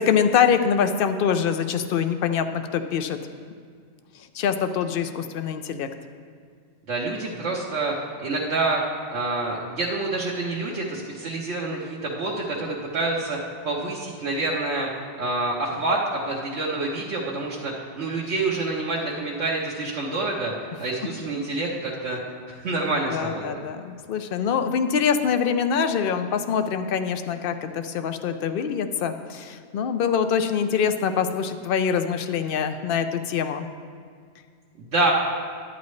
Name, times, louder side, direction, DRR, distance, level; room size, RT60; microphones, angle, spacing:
voice 1, 0.0-3.2 4.3-5.9 23.1-33.7, left 7 dB, 60° left, 9 dB, 0.7 m, -24 dB
voice 2, 6.9-7.9 8.2-8.8 9.1-13.4 13.6-14.9 15.2-20.5 20.8-22.2 22.5-23.6 34.8-35.1, right 2 dB, 80° right, -5 dB, 1.3 m, -27 dB
11.0 x 9.3 x 3.2 m, 2.1 s
omnidirectional pair, 1.2 m